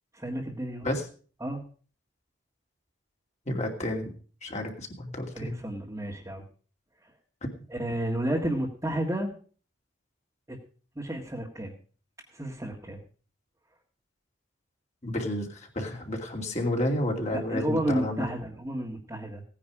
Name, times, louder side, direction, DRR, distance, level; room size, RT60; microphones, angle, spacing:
voice 1, 0.1-0.9 1.4-1.6 5.3-6.4 7.0-7.1 7.7-9.3 10.5-10.6 10.9-11.7 12.3-13.0 17.3-19.4, right 1 dB, 15° right, -3 dB, 1.7 m, -31 dB
voice 2, 3.5-4.1 4.4-5.6 15.0-18.3, left 1 dB, 35° left, 1 dB, 2.7 m, -31 dB
17.0 x 10.0 x 4.9 m, 0.41 s
head